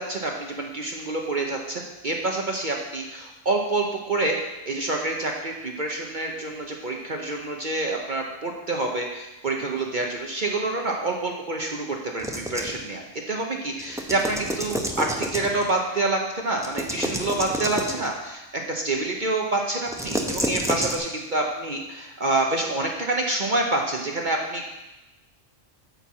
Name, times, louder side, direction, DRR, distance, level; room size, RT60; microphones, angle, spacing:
voice 1, 0.0-4.4 4.6-24.8, right 2 dB, 45° right, 1 dB, 0.8 m, -27 dB
sound 1, 12.2-12.8 13.8-15.7 16.6-18.1 19.9-21.0, equal, 5° right, 0.5 m, -29 dB
9.3 x 4.5 x 7.1 m, 1.0 s
omnidirectional pair, 1.3 m